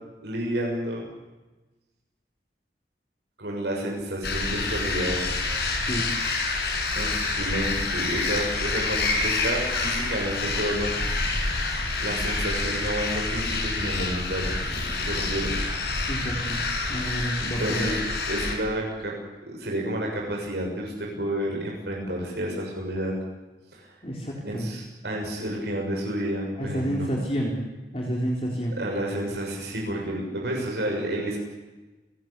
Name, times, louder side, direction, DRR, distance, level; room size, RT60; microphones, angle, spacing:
voice 1, 0.2-1.1 3.4-5.2 6.9-10.9 11.3-11.5 12.0-15.5 17.4-19.1 19.4-23.1 23.7-23.9 24.4-27.1 28.8-31.4, right 1 dB, 75° right, -1 dB, 6.7 m, -30 dB
sound 1, 4.2-18.6, left 3 dB, 70° left, 6.1 m, -27 dB
voice 2, 5.7-6.1 16.1-16.6 16.9-17.9 24.0-24.7 26.6-27.6 27.9-28.7, equal, 35° left, -2 dB, 4.0 m, -29 dB
29.0 x 18.5 x 8.4 m, 1.2 s
head